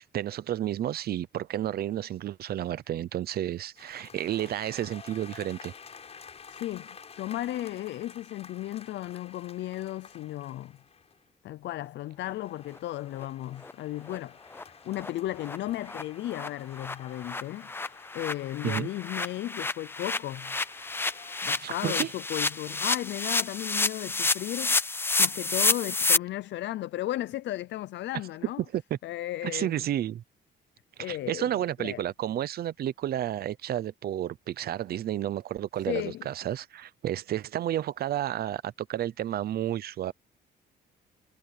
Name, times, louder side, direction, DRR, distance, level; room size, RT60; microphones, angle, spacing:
voice 1, 0.0-5.7 18.6-18.9 21.6-22.1 28.7-28.8 29.4-30.2 31.0-40.1, right 12 dB, 50° right, 0.7 m, -31 dB
sound 1, 3.8-11.3 12.0-19.5 20.0-21.6, left 6 dB, 30° left, 7.7 m, -51 dB
voice 2, 6.5-10.8 11.4-20.6 21.4-24.8 25.2-28.6 29.0-29.9 31.0-31.5 31.8-32.0 35.9-36.3, left 14 dB, 65° left, 0.5 m, -35 dB
sound 2, 13.2-13.3 13.6-13.7 14.1-14.2 14.5-14.6 15.0-15.1 15.4-15.6 15.9-16.0 16.3-26.2, left 3 dB, 10° left, 0.5 m, -29 dB
cardioid pair, 180°, 20 cm